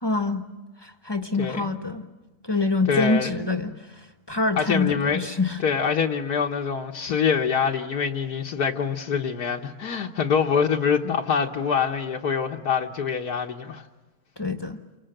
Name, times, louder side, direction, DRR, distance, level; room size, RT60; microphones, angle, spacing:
voice 1, 0.0-0.4 0.8-2.0 2.4-5.6 14.4-14.8, left 3 dB, 15° left, 1.1 m, -26 dB
voice 2, 2.9-3.3 4.6-5.2 5.6-13.8, left 6 dB, 75° left, 1.7 m, -25 dB
29.0 x 26.0 x 7.8 m
omnidirectional pair, 1.7 m